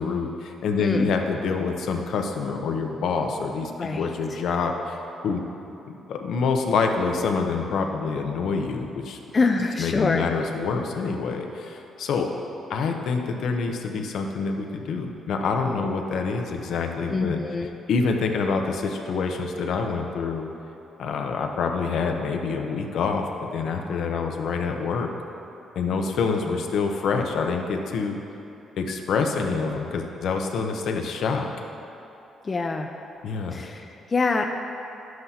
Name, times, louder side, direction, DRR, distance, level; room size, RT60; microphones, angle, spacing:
voice 1, 0.0-3.7 4.0-5.4 5.9-9.2 9.8-12.3 12.7-17.4 17.9-20.5 21.0-25.1 25.7-28.2 28.8-31.5 33.2-33.6, left 4 dB, 75° left, 3 dB, 0.7 m, -26 dB
voice 2, 0.8-1.1 3.8-4.1 9.3-10.3 17.1-17.7 26.5-26.6 32.4-32.9 33.5-34.5, left 3 dB, 30° left, 4 dB, 0.4 m, -25 dB
10.5 x 7.7 x 2.8 m, 3.0 s
cardioid pair, 90°, 0 cm